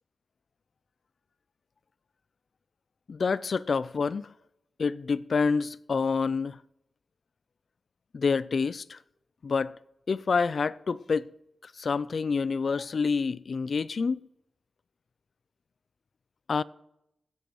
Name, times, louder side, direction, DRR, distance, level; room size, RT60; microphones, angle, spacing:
voice 1, 3.1-4.3 4.8-6.6 8.1-9.0 9.4-9.8 10.1-11.3 11.6-14.3 16.5-16.6, left 5 dB, 65° left, 0.4 m, -27 dB
25.5 x 10.0 x 3.1 m
cardioid pair, 50°, 0 cm